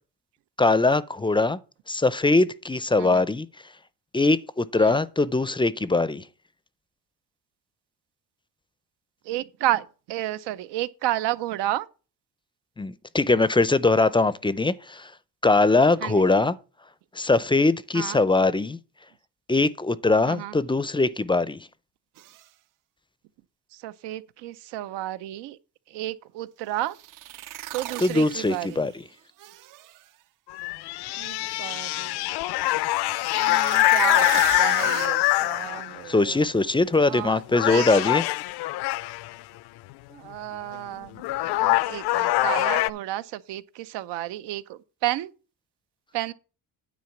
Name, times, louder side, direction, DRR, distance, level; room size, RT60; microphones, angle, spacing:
voice 1, 0.6-1.6 1.9-3.5 4.1-6.2 12.8-15.1 15.4-16.6 17.2-18.8 19.5-21.6 28.0-29.0 36.1-38.2, left 3 dB, 15° left, 0.4 m, -21 dB
voice 2, 9.3-11.9 16.0-16.3 17.9-18.2 20.3-20.5 23.8-25.6 25.9-26.9 27.7-28.8 31.2-32.3 33.3-36.5 37.1-38.1 40.1-45.3 46.1-46.3, right 14 dB, 85° right, 0.8 m, -32 dB
sound 1, 22.2-22.4 26.9-28.9 29.4-30.0 33.1-35.1, right 14 dB, 50° right, 0.5 m, -37 dB
sound 2, 30.5-36.1 36.9-37.2 37.5-39.4 40.7-40.8 41.2-42.9, left 18 dB, 70° left, 0.5 m, -24 dB
9.6 x 4.1 x 7.1 m
cardioid pair, 105°, 40 cm